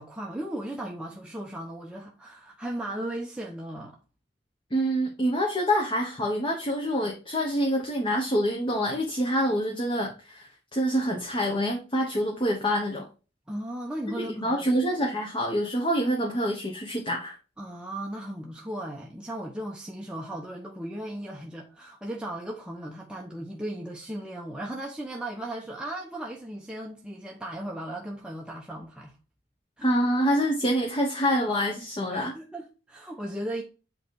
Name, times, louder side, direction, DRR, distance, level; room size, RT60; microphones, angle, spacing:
voice 1, 0.0-4.0 13.5-14.8 17.6-29.2 29.8-29.9 32.1-33.6, right 1 dB, 5° right, 0.8 m, -36 dB
voice 2, 4.7-13.1 14.2-17.4 29.8-32.3, equal, 30° left, 1.2 m, -26 dB
8.4 x 3.3 x 4.6 m
head